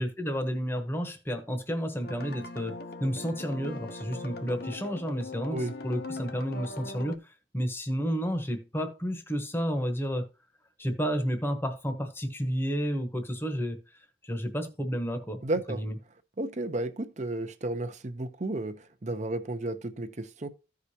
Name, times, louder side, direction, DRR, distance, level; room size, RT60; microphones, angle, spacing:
voice 1, 0.0-2.7 3.0-10.2 10.8-13.8 14.2-15.4 15.8-15.9, equal, 10° left, 1.0 m, -31 dB
sound 1, 2.0-7.2, left 2 dB, 55° left, 0.8 m, -40 dB
voice 2, 15.4-15.8 16.4-20.5, right 2 dB, 35° right, 0.7 m, -33 dB
14.5 x 4.9 x 2.8 m
head